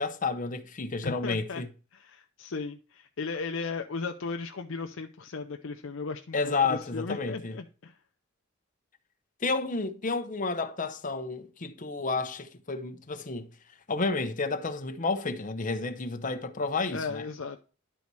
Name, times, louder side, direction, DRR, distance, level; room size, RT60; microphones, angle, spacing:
voice 1, 0.0-1.7 6.3-7.6 9.4-13.5 13.9-17.2, left 3 dB, 40° left, 0.9 m, -31 dB
voice 2, 1.0-1.6 1.9-7.9 16.9-17.6, left 4 dB, 65° left, 0.6 m, -36 dB
11.0 x 4.1 x 4.7 m
head